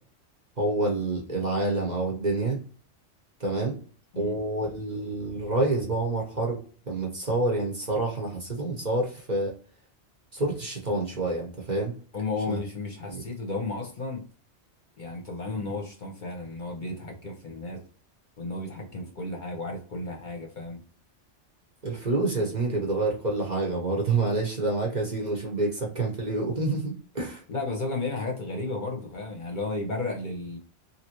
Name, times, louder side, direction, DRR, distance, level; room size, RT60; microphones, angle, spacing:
voice 1, 0.6-2.6 3.4-3.8 4.2-6.6 6.9-9.5 10.3-11.9 12.5-12.6 13.1-13.2 21.8-27.4, right 2 dB, 40° right, -1 dB, 0.9 m, -28 dB
voice 2, 12.1-14.2 15.0-17.8 18.4-20.8 27.5-30.6, left 3 dB, 45° left, 1 dB, 0.8 m, -33 dB
3.2 x 2.7 x 2.9 m, 0.41 s
omnidirectional pair, 1.2 m